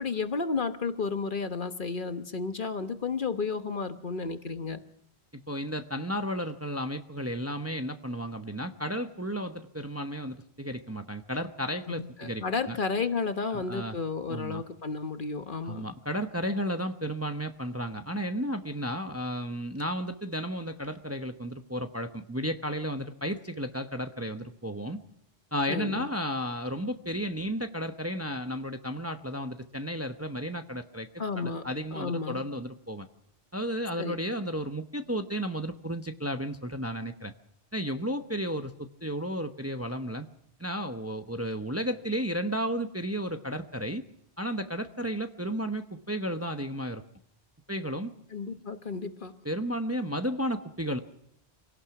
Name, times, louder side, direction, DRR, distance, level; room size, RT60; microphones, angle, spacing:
voice 1, 0.0-4.8 11.9-15.9 25.7-26.1 31.2-31.6 31.9-32.4 34.0-34.2 48.3-49.3, left 4 dB, 50° left, 9 dB, 1.3 m, -32 dB
voice 2, 5.3-12.8 13.5-14.0 14.3-14.6 15.6-25.0 25.5-31.1 31.3-33.1 33.5-37.3 37.7-40.3 40.6-44.0 44.4-47.0 47.7-48.1 49.4-51.0, equal, 15° right, 7 dB, 0.8 m, -33 dB
25.0 x 17.5 x 5.9 m, 0.73 s
omnidirectional pair, 1.1 m